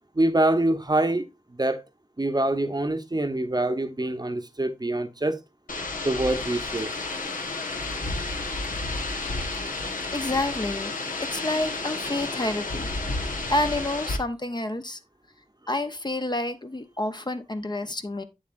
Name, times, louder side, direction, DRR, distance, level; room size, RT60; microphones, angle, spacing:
voice 1, 0.1-1.8 2.2-5.4 6.0-6.9, right 1 dB, 30° right, 0.8 m, -25 dB
sound 1, 5.7-14.2, left 3 dB, 80° left, 1.3 m, -31 dB
voice 2, 10.1-10.9 11.3-12.9 13.5-15.0 15.7-18.2, left 2 dB, 30° left, 0.8 m, -29 dB
8.3 x 7.2 x 2.5 m
wide cardioid pair, 50°, 14 cm